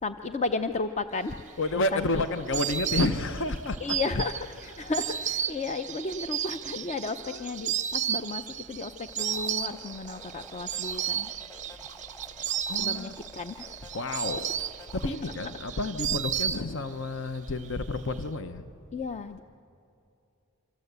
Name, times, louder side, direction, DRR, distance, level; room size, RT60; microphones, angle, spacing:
voice 1, 0.0-1.4 1.9-2.2 3.8-11.3 12.8-13.9 18.9-19.4, left 3 dB, 30° left, 8 dB, 0.5 m, -33 dB
Insect, 1.4-17.1 17.3-18.2, right 10 dB, 35° right, 0.5 m, -33 dB
voice 2, 1.6-4.7 7.2-7.6 12.7-13.1 13.9-14.6 14.9-18.7, left 2 dB, 60° left, 10 dB, 0.8 m, -31 dB
sound 1, 9.1-15.1, left 1 dB, 15° left, 1.6 m, -50 dB
27.0 x 25.0 x 8.1 m, 2.7 s
head